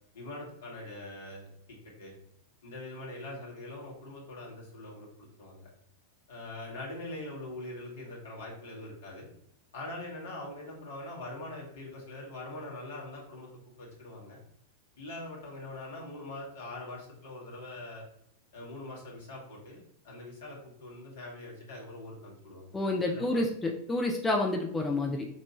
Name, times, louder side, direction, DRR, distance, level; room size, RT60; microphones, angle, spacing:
voice 1, 0.1-2.1 2.6-5.7 6.3-9.3 9.7-13.5 13.8-14.4 15.0-18.0 18.5-22.8 23.0-23.4, left 2 dB, 60° left, -3 dB, 1.5 m, -43 dB
voice 2, 22.7-25.3, left 2 dB, 15° left, 0 dB, 0.5 m, -29 dB
5.4 x 2.5 x 3.0 m, 0.72 s
figure-of-eight pair, 90°, 0 cm